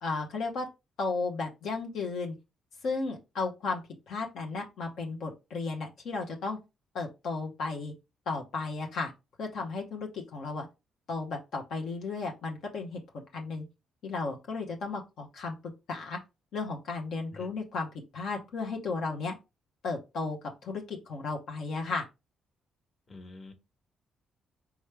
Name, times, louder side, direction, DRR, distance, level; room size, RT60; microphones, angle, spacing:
voice 1, 0.0-0.7 1.0-2.4 2.8-3.8 4.1-6.6 6.9-7.9 8.3-9.1 9.4-10.7 11.1-13.0 13.3-13.6 14.0-15.6 15.9-16.2 16.5-17.9 18.1-19.3 19.8-22.1, left 4 dB, 75° left, 1.0 m, -34 dB
voice 2, 23.1-23.5, left 2 dB, 35° left, 1.3 m, -47 dB
4.8 x 3.1 x 3.3 m
cardioid pair, 90°, 0 cm